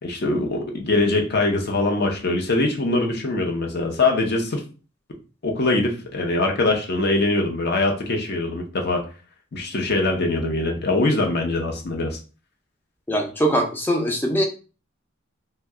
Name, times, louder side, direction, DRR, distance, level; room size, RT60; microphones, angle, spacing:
voice 1, 0.0-4.6 5.4-9.0 9.5-12.2, left 2 dB, 55° left, 2 dB, 0.7 m, -22 dB
voice 2, 13.1-14.5, equal, 10° left, 1 dB, 0.4 m, -22 dB
2.8 x 2.2 x 3.5 m, 0.35 s
head